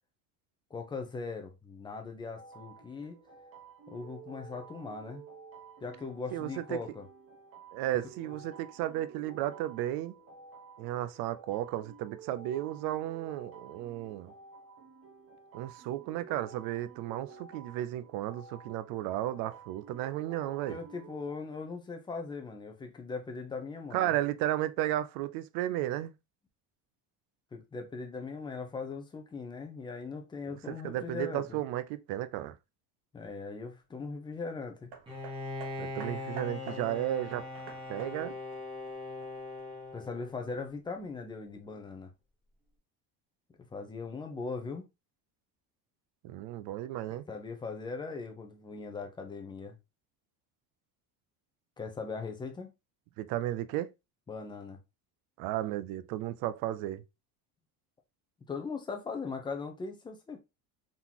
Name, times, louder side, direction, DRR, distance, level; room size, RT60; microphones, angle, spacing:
voice 1, 0.7-3.2 3.9-5.3 5.8-7.1 20.7-24.1 27.5-31.6 33.1-34.9 39.9-42.1 43.6-44.8 47.1-49.8 51.8-52.7 54.3-54.8 58.5-60.4, left 4 dB, 10° left, 0.6 m, -39 dB
sound 1, 2.3-21.4, right 5 dB, 40° right, 1.1 m, -52 dB
voice 2, 6.3-6.8 7.7-10.2 10.8-14.3 15.5-20.8 23.9-26.1 30.4-32.5 35.8-37.4 37.9-38.3 46.2-47.2 53.2-53.9 55.4-57.0, right 13 dB, 65° right, 0.5 m, -34 dB
Hammer, 34.9-39.6 40.5-40.6, right 5 dB, 90° right, 1.3 m, -49 dB
Bowed string instrument, 35.1-40.6, left 2 dB, 15° right, 1.4 m, -41 dB
3.9 x 3.8 x 2.9 m
cardioid pair, 165°, 38 cm